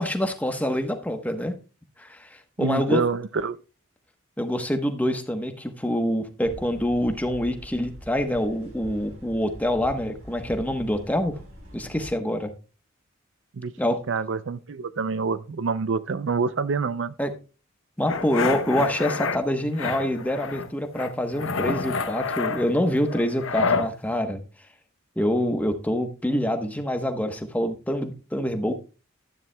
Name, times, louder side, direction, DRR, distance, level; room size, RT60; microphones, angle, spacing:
voice 1, 0.0-1.5 2.0-3.0 4.4-11.4 11.7-12.5 13.8-14.0 17.2-17.3 18.0-24.4 25.2-28.7, equal, 5° left, 1.0 m, -26 dB
voice 2, 2.6-3.6 13.5-13.7 14.1-17.2, right 5 dB, 60° right, 0.5 m, -26 dB
sound 1, 6.4-12.1, equal, 90° right, 3.9 m, -44 dB
sound 2, 18.1-19.4 19.8-20.7 21.0-23.9, left 4 dB, 70° left, 0.9 m, -28 dB
12.5 x 10.5 x 2.2 m
head